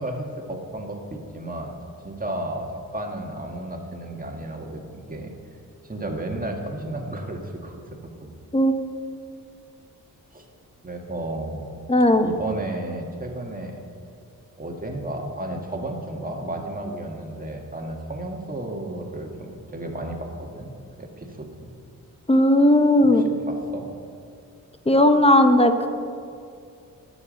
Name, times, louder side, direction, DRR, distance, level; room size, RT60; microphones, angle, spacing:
voice 1, 0.0-1.7 2.0-5.3 5.8-7.8 8.2-8.3 10.3-10.5 10.8-11.7 12.2-13.8 14.6-20.7 21.0-21.7 23.5-23.9, right 1 dB, 25° right, 2 dB, 1.8 m, -33 dB
voice 2, 11.9-12.3 22.3-23.2 24.9-25.9, left 1 dB, 15° left, 7 dB, 0.9 m, -16 dB
19.5 x 7.1 x 5.3 m, 2.4 s
cardioid pair, 85°, 35 cm